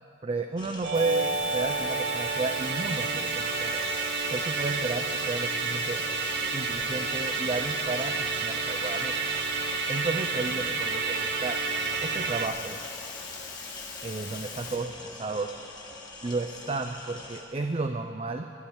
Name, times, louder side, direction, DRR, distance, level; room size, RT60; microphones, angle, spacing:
voice 1, 0.2-3.8 4.3-6.0 6.5-9.2 9.9-11.6 12.0-12.8 14.0-15.6 16.2-18.5, right 3 dB, 30° right, 5 dB, 0.5 m, -32 dB
sound 1, 0.6-17.4, left 2 dB, 25° left, 1.4 m, -44 dB
Musical instrument, 0.8-12.5, right 4 dB, 60° right, 0.8 m, -30 dB
sound 2, 0.9-14.8, left 5 dB, 70° left, 2.0 m, -42 dB
13.0 x 7.2 x 10.0 m, 2.4 s
head